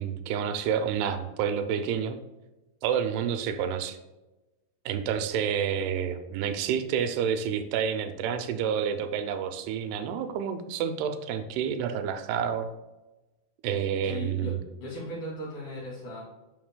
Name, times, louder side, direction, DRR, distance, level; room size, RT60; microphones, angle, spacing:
voice 1, 0.0-2.2 2.8-4.0 4.9-12.7 13.6-14.6, right 8 dB, 80° right, 8 dB, 2.6 m, -29 dB
voice 2, 14.0-16.2, left 1 dB, 50° left, -5 dB, 3.7 m, -37 dB
9.4 x 7.0 x 2.2 m, 1.1 s
omnidirectional pair, 4.8 m